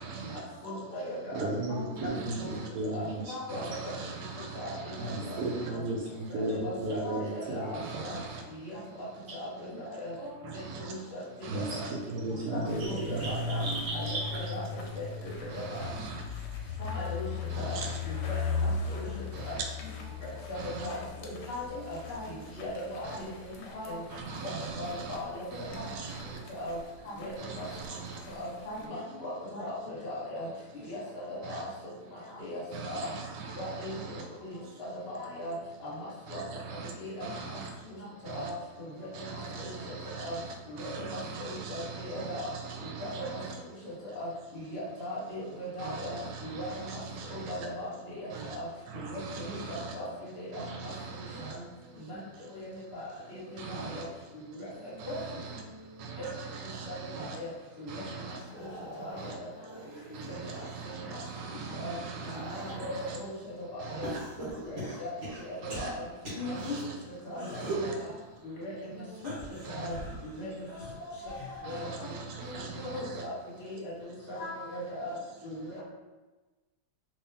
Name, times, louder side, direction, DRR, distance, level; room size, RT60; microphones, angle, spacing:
voice 1, 0.0-0.4 1.3-1.5 2.0-2.7 3.5-5.7 7.7-8.4 10.4-10.9 11.4-11.9 15.5-16.3 17.5-18.0 19.3-19.6 20.5-20.9 23.0-23.2 24.1-25.2 25.5-26.4 27.4-28.2 31.4-31.6 32.7-34.3 36.3-36.9 37.2-37.7 38.2-38.5 39.1-43.6 45.8-47.7 48.3-48.6 48.9-50.0 50.5-51.6 53.6-54.0 55.0-55.6 56.0-57.4 57.9-58.4 59.2-59.4 60.1-63.2 63.8-64.2 65.6-65.9 66.4-67.0 67.5-67.9 69.6-69.9 71.6-73.2, right 5 dB, 90° right, 1.3 m, -41 dB
voice 2, 0.6-2.1 2.4-2.5 2.9-3.9 4.5-4.8 5.0-5.4 5.7-5.8 6.3-8.2 8.6-8.8 9.4-10.3 10.8-11.6 12.3-13.6 13.9-14.6 14.9-15.3 15.7-15.8 16.8-17.3 17.6-17.8 18.0-19.1 19.4-19.6 20.5-21.0 21.2-24.0 24.4-25.8 26.5-26.8 27.0-27.6 28.4-30.5 30.9-31.7 32.4-33.1 33.6-35.5 35.8-35.9 36.3-36.4 37.0-37.6 38.2-38.5 38.8-39.2 39.6-39.7 40.2-40.3 40.7-42.5 43.0-43.4 43.8-44.3 44.5-46.2 46.4-47.0 47.3-48.6 48.9-50.0 50.4-50.9 52.1-52.2 52.5-53.4 53.7-54.0 54.3-55.2 56.2-56.3 56.9-57.5 57.8-58.0 58.6-58.7 59.0-59.3 60.3-60.7 61.8-61.9 62.7-62.8 63.1-64.1 64.4-66.0 66.3-66.8 67.2-67.7 68.0-68.1 68.4-69.0 69.7-69.9 70.3-72.1 72.8-73.3 73.6-75.1 75.4-75.8, left 1 dB, 40° left, 1.3 m, -39 dB
voice 3, 1.3-3.3 5.0-7.8 11.5-14.5 15.4-15.6, right 2 dB, 65° right, 1.0 m, -34 dB
sound 1, 12.6-28.9, left 4 dB, 80° left, 1.2 m, -38 dB
sound 2, 58.4-60.7 61.2-63.2 64.0-66.8 67.3-67.9 69.1-72.0 72.4-72.8 74.0-74.1, right 1 dB, 45° right, 1.4 m, -41 dB
3.0 x 3.0 x 3.3 m
omnidirectional pair, 1.9 m